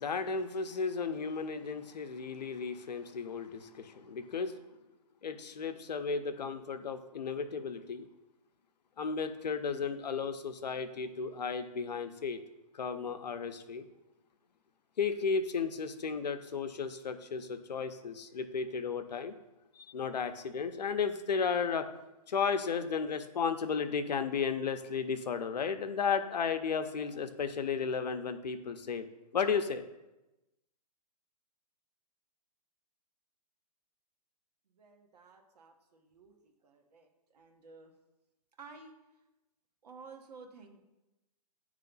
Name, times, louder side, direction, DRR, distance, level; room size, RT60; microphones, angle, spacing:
voice 1, 0.0-4.6 5.2-8.1 9.0-12.4 12.7-13.9 15.0-19.3 19.8-21.9 22.3-29.0 29.3-29.8, left 5 dB, 90° left, 8 dB, 0.6 m, -34 dB
voice 2, 34.7-37.9 38.6-39.0 39.8-40.8, right 4 dB, 75° right, 3 dB, 1.2 m, -53 dB
9.1 x 3.2 x 3.9 m, 1.0 s
hypercardioid pair, 135°, 21 cm